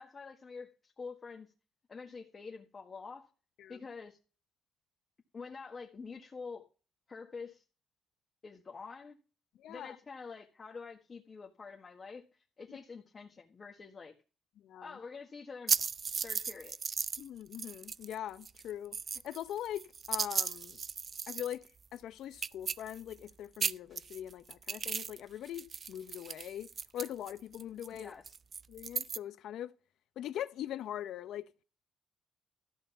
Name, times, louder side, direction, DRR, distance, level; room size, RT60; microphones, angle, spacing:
voice 1, 0.0-1.5 1.9-3.3 3.7-4.2 5.3-6.7 7.1-7.6 8.4-9.2 9.7-14.1 14.8-15.7 16.2-16.8 27.9-28.3, left 4 dB, 35° left, 1.6 m, -47 dB
voice 2, 9.6-10.0 12.7-12.8 14.6-14.9 17.2-19.0 19.2-20.8 21.3-21.6 21.9-28.1 28.7-29.7 30.2-31.5, left 11 dB, 80° left, 0.8 m, -41 dB
sound 1, 15.7-17.3 17.5-18.2 18.4-21.7 22.0-22.1 22.3-23.3 23.6-25.2 25.5-29.2, right 6 dB, 45° right, 0.4 m, -36 dB
13.5 x 5.5 x 6.9 m
cardioid pair, 90°, 0 cm